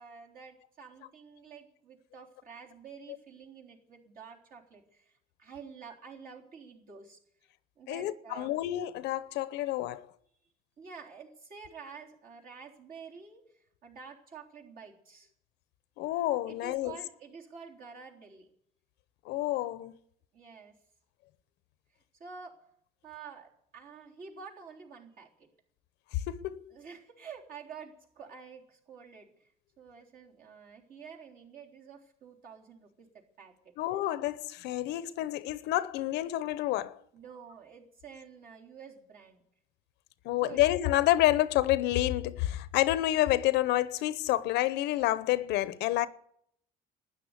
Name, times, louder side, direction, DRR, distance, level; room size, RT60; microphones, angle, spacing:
voice 1, 0.0-5.1 5.4-7.2 7.8-8.6 10.4-10.5 10.8-15.3 16.5-18.5 20.3-20.8 22.2-22.6 23.0-25.5 26.7-29.5 29.8-33.7 37.1-39.4 40.3-40.6, right 6 dB, 60° right, 3.7 m, -49 dB
voice 2, 7.9-10.1 16.0-17.0 19.3-20.0 26.3-26.7 33.8-37.0 40.2-46.1, left 15 dB, 90° left, 0.8 m, -29 dB
12.5 x 9.8 x 9.7 m
cardioid pair, 110°, 17 cm